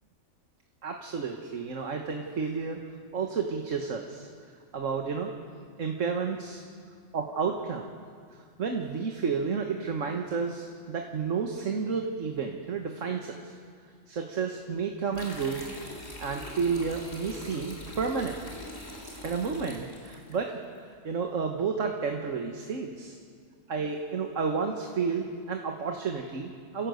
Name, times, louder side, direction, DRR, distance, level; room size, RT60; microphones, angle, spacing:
voice 1, 0.8-2.8 3.1-4.3 4.7-5.3 5.8-6.6 7.1-7.9 8.6-13.4 14.1-15.7 16.2-18.4 19.2-20.6 21.0-23.2 23.7-26.9, right 5 dB, 80° right, 3 dB, 1.8 m, -31 dB
sound 1, 15.1-20.4, left 1 dB, 55° left, 4.6 m, -43 dB
29.5 x 16.5 x 7.9 m, 2.1 s
omnidirectional pair, 1.3 m